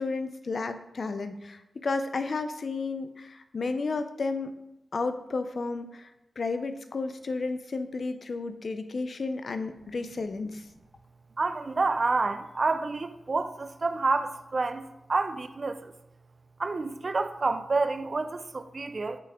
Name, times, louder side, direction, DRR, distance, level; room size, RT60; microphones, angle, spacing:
voice 1, 0.0-4.5 4.9-6.1 6.4-10.6, left 3 dB, 65° left, 0.5 m, -32 dB
voice 2, 11.4-15.9 16.6-19.2, right 3 dB, 55° right, 0.4 m, -29 dB
6.0 x 3.4 x 4.8 m
cardioid pair, 50°, 0 cm